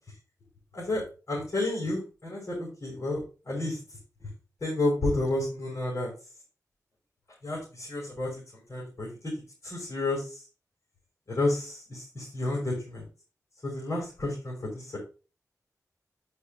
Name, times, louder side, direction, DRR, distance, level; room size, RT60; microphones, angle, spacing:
voice 1, 0.7-3.2 3.5-3.8 4.6-6.1 7.4-9.3 9.6-10.4 11.3-13.0 13.6-15.0, left 2 dB, 50° left, -4 dB, 6.3 m, -31 dB
11.0 x 8.4 x 2.9 m, 0.34 s
wide cardioid pair, 85°, 6 cm